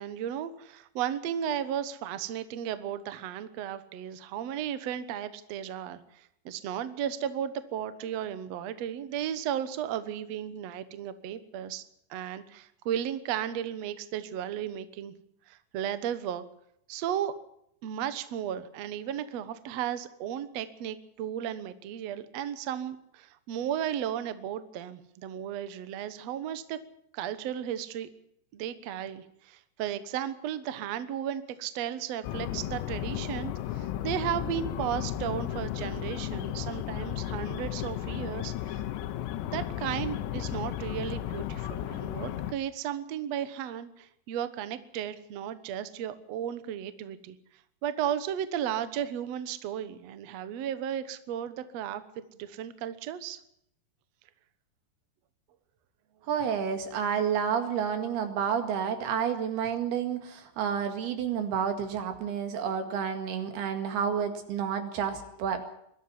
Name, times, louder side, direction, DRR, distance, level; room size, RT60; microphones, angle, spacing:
voice 1, 0.0-11.8 12.1-15.1 15.5-16.4 16.9-17.3 17.8-26.8 27.1-28.1 28.5-38.8 39.4-47.4 47.8-53.4, right 10 dB, 85° right, 12 dB, 1.4 m, -34 dB
sound 1, 32.2-42.5, left 12 dB, 85° left, 3.2 m, -34 dB
voice 2, 56.3-65.7, right 7 dB, 70° right, 7 dB, 4.0 m, -30 dB
21.5 x 13.0 x 9.8 m, 0.74 s
omnidirectional pair, 4.9 m